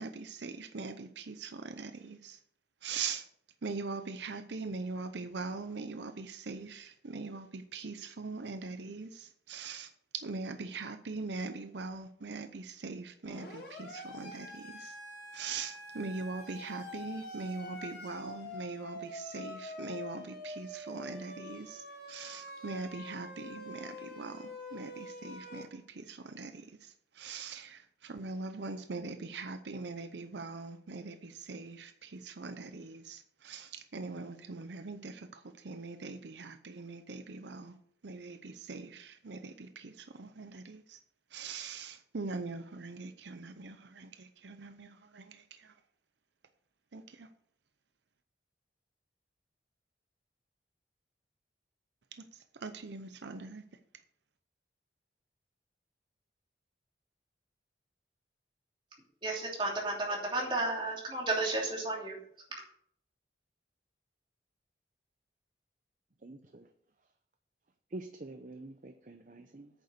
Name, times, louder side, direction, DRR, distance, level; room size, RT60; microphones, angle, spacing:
voice 1, 0.0-2.4 2.8-3.3 3.6-15.0 15.3-37.8 38.0-41.0 41.3-45.7 46.9-47.3 52.5-53.6, right 4 dB, 80° right, 0.7 m, -42 dB
Siren, 13.2-25.6, left 1 dB, 75° left, 4.2 m, -46 dB
voice 2, 59.2-62.2, right 2 dB, 25° right, 2.9 m, -33 dB
voice 3, 66.2-66.7 67.9-69.7, right 2 dB, 45° right, 0.6 m, -46 dB
9.2 x 6.7 x 6.6 m
head